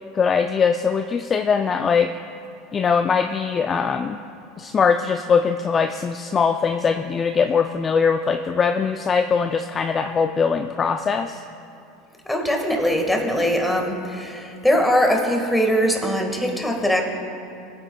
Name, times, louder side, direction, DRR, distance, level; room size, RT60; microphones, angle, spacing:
voice 1, 0.1-2.1 2.7-4.2 4.6-11.4, left 6 dB, 30° left, 6 dB, 0.4 m, -21 dB
voice 2, 12.2-17.0, equal, 5° left, 1 dB, 1.6 m, -21 dB
20.5 x 9.1 x 2.3 m, 2.7 s
supercardioid pair, 105°, 0 cm